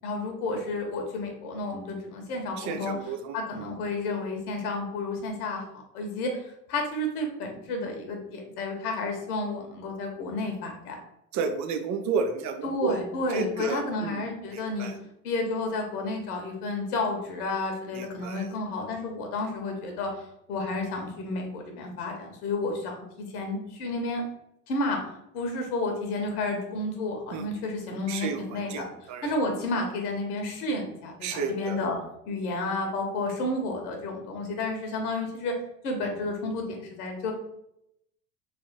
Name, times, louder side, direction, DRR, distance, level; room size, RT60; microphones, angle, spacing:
voice 1, 0.0-5.7 5.9-10.9 12.6-14.9 15.2-24.2 24.7-25.0 25.3-28.9 29.2-32.0 32.2-35.5 35.8-37.3, left 2 dB, 65° left, 3 dB, 1.2 m, -31 dB
voice 2, 2.6-3.4 11.3-13.0 13.3-14.2 14.8-14.9 17.9-18.5 27.3-27.4 28.1-28.4 28.7-28.8 29.1-29.3 31.2-31.8, right 5 dB, 40° right, 6 dB, 0.7 m, -31 dB
3.5 x 3.2 x 4.2 m, 0.80 s
figure-of-eight pair, 75°, 48 cm